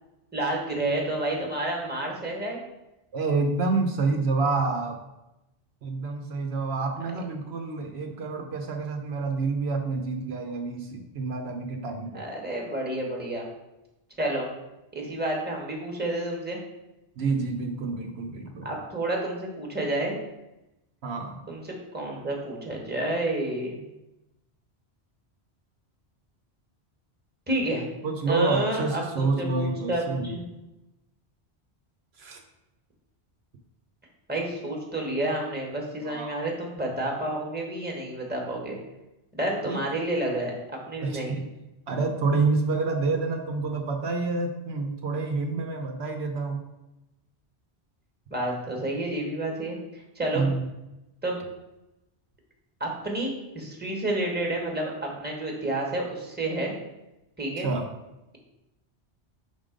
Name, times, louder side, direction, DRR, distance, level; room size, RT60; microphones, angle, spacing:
voice 1, 0.3-2.6 12.1-13.4 14.2-14.5 14.9-16.6 18.6-20.1 21.5-21.6 21.9-23.8 27.5-30.5 34.3-38.8 39.3-41.3 48.3-50.5 51.2-51.4 52.8-56.7 57.4-57.7, right 1 dB, 10° right, -1 dB, 1.2 m, -30 dB
voice 2, 3.1-5.0 5.8-12.3 17.2-18.7 21.0-21.4 28.0-30.4 32.2-32.4 36.0-36.4 39.6-39.8 41.0-41.5 41.9-46.6 50.3-50.7 57.6-57.9, right 3 dB, 70° right, 3 dB, 1.0 m, -28 dB
5.8 x 3.7 x 5.0 m, 0.95 s
omnidirectional pair, 1.1 m